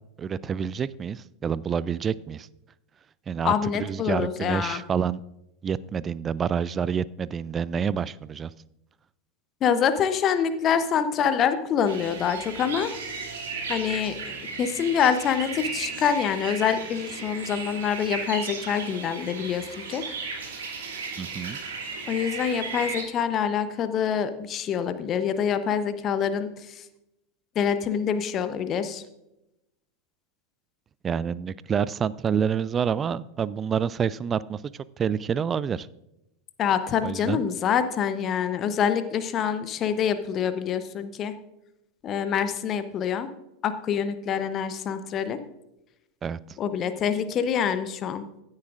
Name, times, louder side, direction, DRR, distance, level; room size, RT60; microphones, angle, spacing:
voice 1, 0.2-2.5 3.3-5.2 5.6-8.5 21.2-21.6 31.0-34.6 35.0-35.9 37.0-37.4 46.2-46.4, right 7 dB, 25° right, 20 dB, 0.3 m, -28 dB
voice 2, 3.4-4.8 9.6-12.9 13.7-20.0 22.1-26.5 27.6-29.0 36.6-41.3 42.0-43.3 43.6-45.4 46.6-48.3, left 8 dB, 35° left, 11 dB, 0.8 m, -26 dB
sound 1, 11.8-23.0, right 4 dB, 65° right, 2.7 m, -35 dB
15.5 x 9.6 x 2.5 m, 0.90 s
figure-of-eight pair, 85°, 0 cm